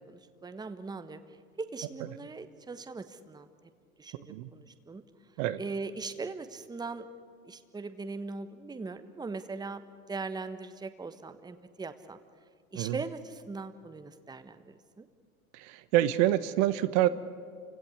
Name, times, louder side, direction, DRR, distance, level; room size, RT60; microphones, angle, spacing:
voice 1, 0.1-1.2 1.6-3.5 4.0-4.2 4.5-5.0 5.6-7.1 7.4-9.8 10.1-12.2 12.7-15.0, right 4 dB, 10° right, 10 dB, 1.2 m, -40 dB
voice 2, 15.6-17.1, right 14 dB, 50° right, 12 dB, 1.2 m, -26 dB
28.5 x 17.0 x 9.8 m, 2.1 s
hypercardioid pair, 100°, 44 cm